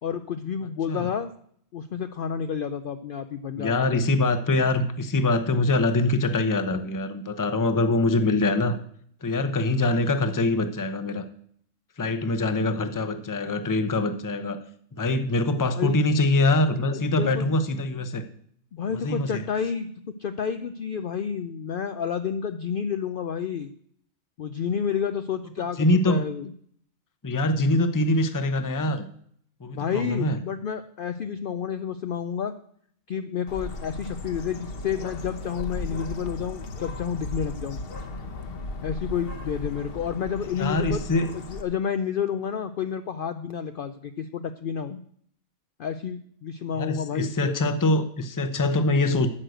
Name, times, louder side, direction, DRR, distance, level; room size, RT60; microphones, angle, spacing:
voice 1, 0.0-1.3 1.7-4.0 15.8-16.0 16.9-17.5 18.7-19.9 20.2-23.7 24.4-26.5 29.8-32.5 33.1-37.8 38.8-41.0 41.3-45.0 45.8-47.6, left 7 dB, 70° left, 9 dB, 0.5 m, -30 dB
voice 2, 3.6-8.8 9.2-11.3 12.0-14.6 14.9-18.2 18.9-19.4 25.8-26.2 27.2-29.1 29.6-30.4 40.6-41.3 46.8-49.3, left 2 dB, 20° left, 9 dB, 0.5 m, -24 dB
Bird, 33.5-41.6, left 2 dB, 45° left, 1.0 m, -36 dB
9.9 x 6.4 x 7.8 m, 0.64 s
omnidirectional pair, 1.5 m